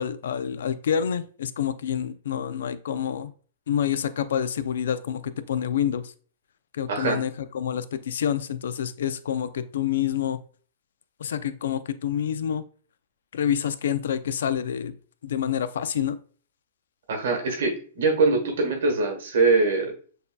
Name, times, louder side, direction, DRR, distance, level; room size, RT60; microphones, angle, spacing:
voice 1, 0.0-3.3 3.7-6.1 6.7-10.4 11.2-12.6 13.3-15.0 15.2-16.2, left 9 dB, 85° left, 13 dB, 0.4 m, -27 dB
voice 2, 6.9-7.2 17.1-19.9, right 3 dB, 80° right, 4 dB, 1.3 m, -23 dB
6.5 x 2.7 x 2.2 m, 0.43 s
hypercardioid pair, 145°, 0 cm